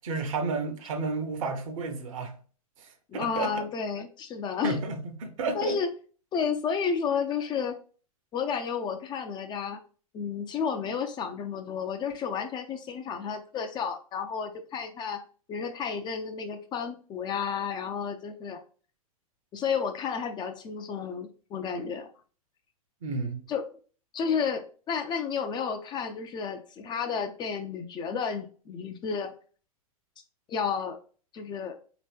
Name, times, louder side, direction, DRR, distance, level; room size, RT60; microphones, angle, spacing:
voice 1, 0.0-2.3 3.1-3.6 4.6-5.8 23.0-23.4, right 4 dB, 60° right, 0.9 m, -31 dB
voice 2, 3.1-4.8 5.5-5.9 6.3-7.8 8.3-9.8 10.1-15.2 15.5-18.6 19.5-22.1 23.5-23.6 24.1-29.3 30.5-31.0 31.3-31.8, left 6 dB, 25° left, 0.4 m, -31 dB
4.3 x 2.9 x 3.2 m
figure-of-eight pair, 100°, 19 cm